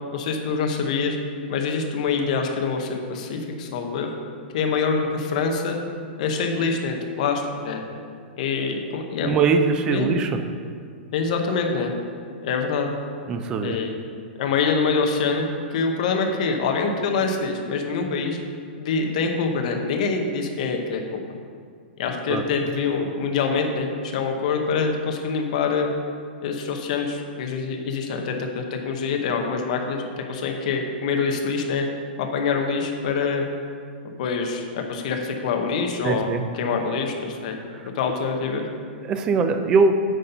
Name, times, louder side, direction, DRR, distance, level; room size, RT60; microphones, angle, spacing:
voice 1, 0.1-1.2 1.5-4.1 4.5-5.8 6.2-7.8 8.4-9.3 9.9-10.1 11.1-11.9 12.4-12.9 13.6-14.0 14.4-18.4 18.8-21.2 22.0-25.9 26.4-31.8 32.2-33.4 34.2-37.6 37.9-38.7, left 5 dB, 40° left, 3 dB, 0.8 m, -25 dB
voice 2, 9.2-10.3 13.3-13.8 22.3-22.4 36.0-36.4 37.7-37.9 39.0-39.9, right 4 dB, 15° right, 7 dB, 0.3 m, -21 dB
9.1 x 4.2 x 5.5 m, 2.1 s
supercardioid pair, 175°, 6 cm